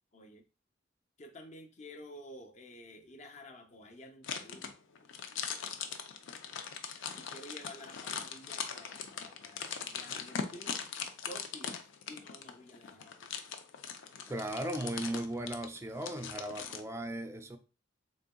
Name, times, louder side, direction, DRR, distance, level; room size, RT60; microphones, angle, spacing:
voice 1, 0.1-0.4 1.2-4.7 7.1-10.8 11.3-13.4, left 1 dB, 40° left, 0.6 m, -51 dB
sound 1, 4.2-16.8, left 6 dB, 85° left, 0.5 m, -41 dB
voice 2, 14.3-17.6, right 1 dB, 15° right, 0.4 m, -37 dB
3.9 x 3.6 x 2.2 m
head